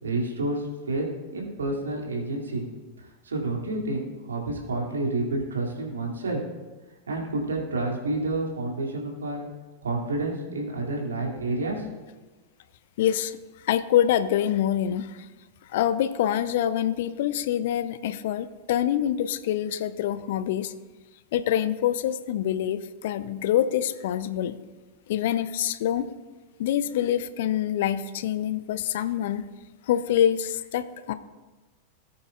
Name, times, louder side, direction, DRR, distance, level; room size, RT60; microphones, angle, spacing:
voice 1, 0.0-1.0 1.3-2.6 3.0-6.4 7.1-9.5 9.8-11.9, right 2 dB, 70° right, -2 dB, 2.6 m, -29 dB
voice 2, 13.0-13.4 13.6-15.3 15.7-20.7 21.3-24.6 25.1-26.1 26.6-29.4 29.9-31.1, left 10 dB, 55° left, 14 dB, 0.5 m, -25 dB
18.5 x 8.6 x 2.5 m, 1.2 s
figure-of-eight pair, 90°, 0 cm